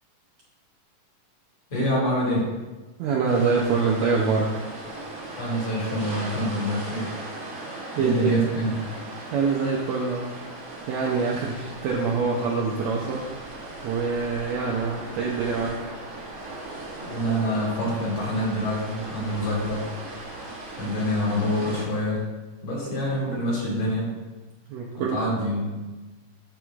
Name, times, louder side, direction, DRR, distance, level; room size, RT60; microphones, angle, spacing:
voice 1, 1.7-2.5 5.4-7.2 8.0-8.8 17.0-19.9 20.8-22.3 22.6-24.1 25.0-25.7, equal, 50° left, -4 dB, 2.7 m, -26 dB
voice 2, 3.0-4.6 7.9-8.3 9.3-10.3 10.9-13.3 13.8-15.9 20.8-20.9 24.7-25.2, right 5 dB, 85° right, -2 dB, 1.5 m, -25 dB
sound 1, 3.3-21.8, right 2 dB, 50° right, 1.3 m, -38 dB
13.0 x 4.6 x 2.4 m, 1.2 s
omnidirectional pair, 4.0 m